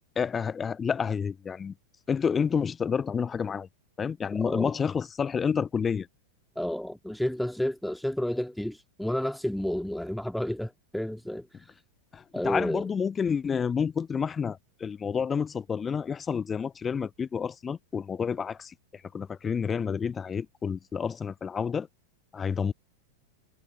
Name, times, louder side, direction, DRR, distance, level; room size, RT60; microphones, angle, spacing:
voice 1, 0.2-1.7 2.1-3.7 4.0-6.1 12.1-18.7 19.1-21.9 22.3-22.7, left 6 dB, 20° left, 0.5 m, -29 dB
voice 2, 4.3-4.7 6.6-11.5 12.3-12.9, left 1 dB, ahead, 2.1 m, -31 dB
figure-of-eight pair, 90°, 0 cm